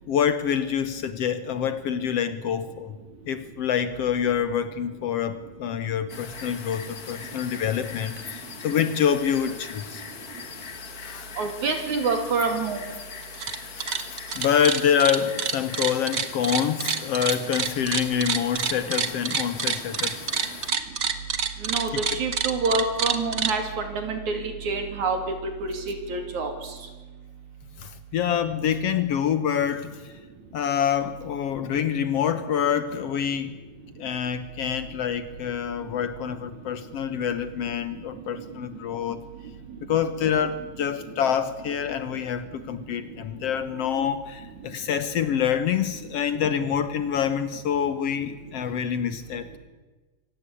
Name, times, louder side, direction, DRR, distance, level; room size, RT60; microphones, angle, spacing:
voice 1, 0.1-3.0 3.3-10.0 10.8-11.3 13.8-20.3 27.8-30.1 30.5-33.5 34.0-39.2 39.9-49.6, left 8 dB, 65° left, 12 dB, 1.6 m, -26 dB
sound 1, 6.1-20.7, left 6 dB, 40° left, 1.4 m, -40 dB
voice 2, 11.4-12.8 21.6-26.5, right 4 dB, 60° right, 6 dB, 4.0 m, -27 dB
sound 2, 13.2-13.6 13.8-23.5, right 6 dB, 80° right, 0.7 m, -27 dB
25.0 x 17.5 x 8.4 m, 1.2 s
omnidirectional pair, 3.8 m